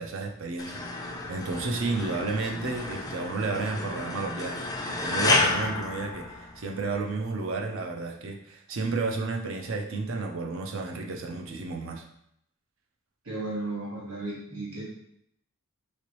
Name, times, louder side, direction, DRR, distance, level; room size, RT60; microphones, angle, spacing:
voice 1, 0.0-12.0, right 3 dB, 60° right, 3 dB, 0.5 m, -32 dB
sound 1, 0.6-6.9, left 3 dB, 15° left, 0.3 m, -30 dB
voice 2, 13.2-14.8, right 2 dB, 85° right, -6 dB, 1.4 m, -34 dB
3.2 x 2.9 x 3.0 m, 0.73 s
head